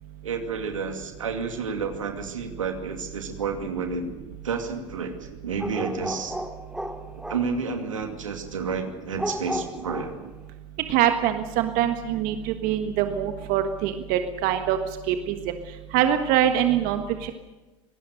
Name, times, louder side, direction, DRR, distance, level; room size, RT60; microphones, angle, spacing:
voice 1, 0.2-4.0 4.4-6.3 7.1-10.2, right 5 dB, 90° right, 5 dB, 2.4 m, -30 dB
sound 1, 5.6-7.8 9.2-10.3, right 1 dB, 5° right, 2.7 m, -33 dB
voice 2, 10.9-14.8 15.1-15.5 15.9-17.3, right 10 dB, 60° right, 7 dB, 1.5 m, -24 dB
25.5 x 18.5 x 6.6 m, 1.1 s
hypercardioid pair, 75°, 16 cm